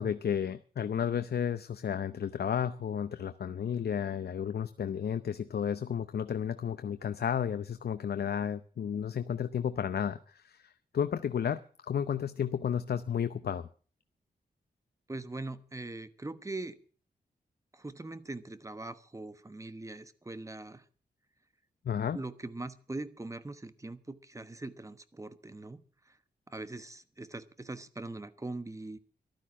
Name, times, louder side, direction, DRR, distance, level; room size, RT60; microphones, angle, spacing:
voice 1, 0.0-13.7 21.8-22.2, left 8 dB, 75° left, 11 dB, 0.7 m, -32 dB
voice 2, 15.1-16.8 17.7-20.8 22.1-25.8 26.5-29.0, right 2 dB, 20° right, 13 dB, 1.2 m, -41 dB
14.5 x 12.5 x 6.0 m, 0.40 s
wide cardioid pair, 100°, 17 cm